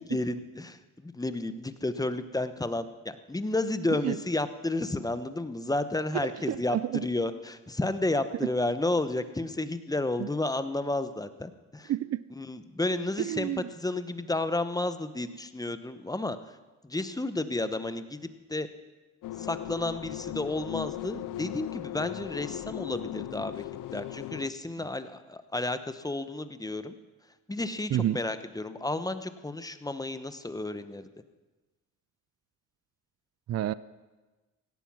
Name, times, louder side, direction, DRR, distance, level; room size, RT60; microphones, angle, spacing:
voice 1, 0.1-11.9 12.4-16.6 16.8-18.7 19.4-26.9 27.5-31.1, left 2 dB, 10° left, 11 dB, 0.9 m, -32 dB
voice 2, 6.2-7.1 10.2-10.3 11.9-12.2 13.2-13.7 27.9-28.2 33.5-33.7, right 12 dB, 50° right, 18 dB, 0.5 m, -29 dB
sound 1, 19.2-24.5, left 14 dB, 65° left, 0.5 m, -38 dB
16.5 x 11.5 x 6.1 m, 1.2 s
cardioid pair, 80°, 34 cm